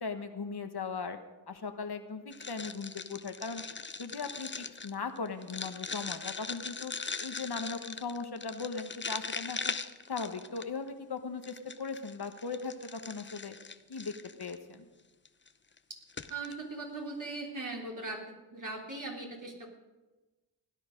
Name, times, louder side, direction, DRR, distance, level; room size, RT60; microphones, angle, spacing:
voice 1, 0.0-1.2 1.5-3.6 4.0-6.9 7.2-9.8 10.1-13.5 13.9-14.1 14.4-14.9, left 4 dB, 65° left, 7 dB, 1.3 m, -38 dB
sound 1, 2.3-10.9 11.4-14.6 15.2-15.5 15.8-15.9 16.1-16.5, left 4 dB, 25° left, 0.7 m, -40 dB
voice 2, 16.3-18.2 18.5-19.7, right 3 dB, 45° right, -1 dB, 3.5 m, -39 dB
17.0 x 10.5 x 5.2 m, 1.2 s
cardioid pair, 55°, 42 cm